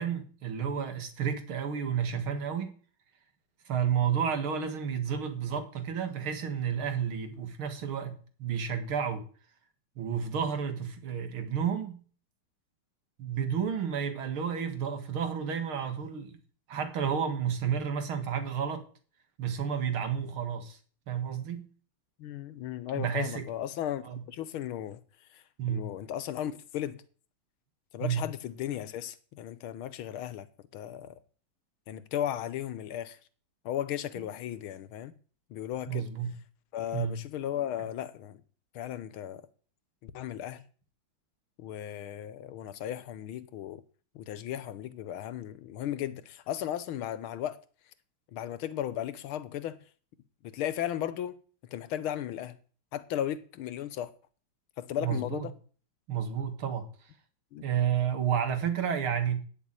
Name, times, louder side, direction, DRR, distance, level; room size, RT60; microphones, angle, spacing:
voice 1, 0.0-2.7 3.7-9.2 10.0-12.0 13.2-16.4 16.7-18.9 19.4-20.8 21.1-21.7 23.0-23.5 24.0-24.2 25.6-25.9 28.0-28.2 35.9-36.4 36.9-37.2 55.0-55.5 56.1-56.9 57.6-59.4, right 8 dB, 85° right, 2.7 m, -31 dB
voice 2, 22.2-25.0 25.3-27.0 27.9-30.5 30.7-31.2 31.9-33.2 33.7-35.1 35.5-36.1 36.7-38.4 38.7-39.4 40.0-40.6 41.6-43.8 44.2-47.6 48.3-49.8 50.4-51.4 51.7-52.6 52.9-54.1 54.8-55.5 57.5-57.7, left 11 dB, 85° left, 1.8 m, -35 dB
9.3 x 7.3 x 9.0 m
omnidirectional pair, 2.2 m